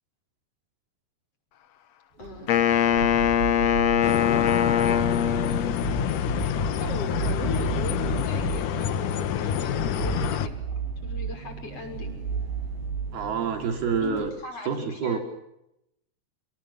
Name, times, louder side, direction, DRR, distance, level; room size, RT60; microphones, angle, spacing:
voice 1, 2.1-2.6 6.8-12.3 14.0-15.2, left 3 dB, 35° left, 5 dB, 7.1 m, -39 dB
sound 1, 2.2-14.3, right 5 dB, 80° right, 8.4 m, -33 dB
Wind instrument woodwind instrument, 2.5-6.0, left 9 dB, 85° left, 1.4 m, -22 dB
sound 2, 4.0-10.5, left 10 dB, 65° left, 2.2 m, -28 dB
voice 2, 13.1-14.3 14.7-15.2, right 6 dB, 65° right, 5 dB, 5.0 m, -27 dB
29.5 x 28.5 x 7.2 m, 0.84 s
omnidirectional pair, 5.0 m